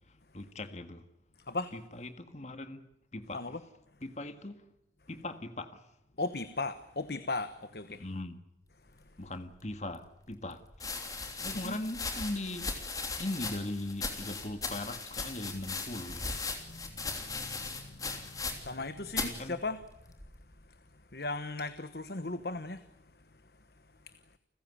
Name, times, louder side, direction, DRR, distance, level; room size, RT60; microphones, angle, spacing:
voice 1, 0.3-1.0 1.7-2.9 3.1-3.4 4.0-4.6 5.1-5.8 8.0-8.4 9.2-10.6 11.4-12.7 13.2-16.3 19.2-19.6, left 1 dB, 40° left, 1.7 m, -39 dB
voice 2, 1.4-1.7 3.3-3.6 6.2-8.0 8.8-9.3 11.2-11.8 16.6-20.2 20.6-24.2, left 3 dB, 60° left, 1.2 m, -39 dB
sound 1, 9.7-9.8 10.7-18.8 19.1-19.4 20.2-20.6, left 4 dB, 20° left, 3.2 m, -38 dB
30.0 x 15.5 x 9.8 m
head